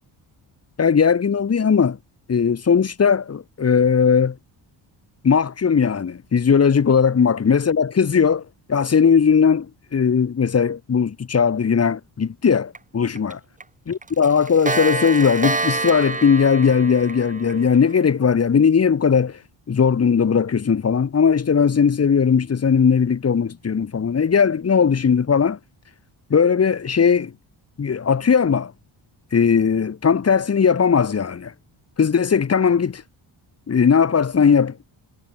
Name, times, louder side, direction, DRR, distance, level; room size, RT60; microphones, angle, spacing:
voice 1, 0.8-2.0 2.3-4.3 5.2-8.4 8.7-9.7 9.9-13.4 13.9-19.3 19.7-25.6 26.3-27.3 27.8-28.7 29.3-31.5 32.0-33.0 33.7-34.9, left 6 dB, 35° left, 2.1 m, -18 dB
Clock, 12.7-12.8 13.2-13.3 13.6-13.7 14.0-18.1, right 3 dB, 15° right, 2.8 m, -27 dB
cardioid pair, 115°, 45 cm